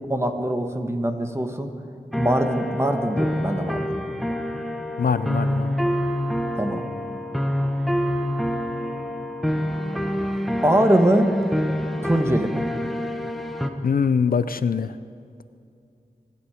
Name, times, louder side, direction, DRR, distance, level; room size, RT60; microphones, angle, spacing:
voice 1, 0.1-1.7 2.2-4.3 6.6-6.9 10.6-11.3 12.0-12.6, right 1 dB, 15° right, 5 dB, 1.4 m, -22 dB
sound 1, 2.1-13.7, equal, ahead, 1.2 m, -26 dB
voice 2, 5.0-5.7 13.8-14.9, left 6 dB, 70° left, 14 dB, 0.5 m, -22 dB
24.5 x 11.0 x 5.0 m, 2.5 s
wide cardioid pair, 50°, 16 cm